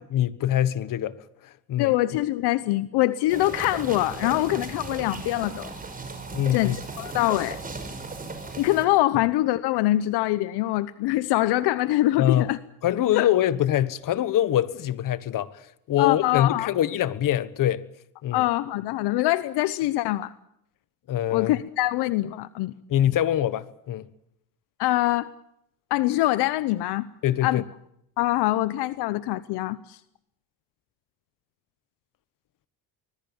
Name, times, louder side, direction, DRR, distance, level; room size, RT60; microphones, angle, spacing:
voice 1, 0.1-1.1 1.7-1.9 6.3-6.8 12.2-12.5 12.8-15.5 15.9-17.9 18.2-18.5 21.1-21.5 22.9-24.1 27.2-27.6, left 11 dB, 50° left, 1.4 m, -24 dB
voice 2, 1.8-5.7 6.5-7.6 8.6-12.6 13.1-13.3 16.0-16.7 18.3-20.3 21.3-22.7 24.8-25.3 25.9-27.1 27.4-27.6 28.2-30.0, left 16 dB, 70° left, 0.9 m, -24 dB
sound 1, 3.3-8.9, right 3 dB, 20° right, 5.6 m, -37 dB
25.0 x 20.5 x 7.2 m
cardioid pair, 120°, 41 cm